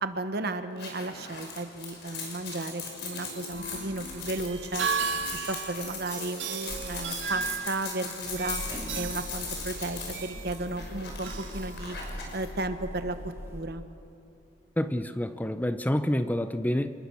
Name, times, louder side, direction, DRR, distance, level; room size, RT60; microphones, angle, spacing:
voice 1, 0.0-4.9 5.5-6.4 6.8-8.6 8.9-12.0 12.3-13.8, right 2 dB, 60° right, 1.3 m, -34 dB
sound 1, 0.8-12.5, left 5 dB, 65° left, 5.6 m, -39 dB
sound 2, 2.9-12.4, right 5 dB, 85° right, 2.0 m, -36 dB
sound 3, 3.5-6.3 6.6-13.6, equal, 15° right, 3.5 m, -43 dB
voice 2, 14.8-16.9, left 1 dB, 10° left, 0.6 m, -28 dB
28.5 x 20.0 x 6.4 m
head